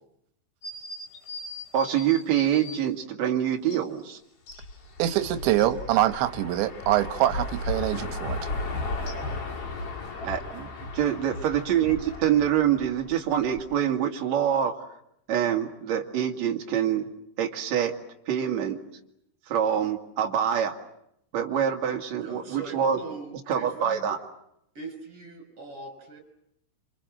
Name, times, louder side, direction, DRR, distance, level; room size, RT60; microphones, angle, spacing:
sound 1, 0.6-2.8 3.7-3.8 4.5-5.7 9.1-9.2, left 2 dB, 70° left, 6.0 m, -41 dB
voice 1, 1.7-4.2 10.2-14.8 15.3-17.1 17.4-17.9 18.3-18.8 19.5-20.7 21.3-23.0 23.5-24.2, right 9 dB, 45° right, 2 dB, 2.7 m, -25 dB
sound 2, 4.5-13.7, left 2 dB, 35° left, 3.1 m, -35 dB
voice 2, 5.0-8.4, right 13 dB, 75° right, 10 dB, 3.4 m, -24 dB
voice 3, 22.1-24.0 24.7-26.2, right 3 dB, 30° right, 6 dB, 6.6 m, -41 dB
27.5 x 26.5 x 7.7 m, 0.76 s
omnidirectional pair, 5.4 m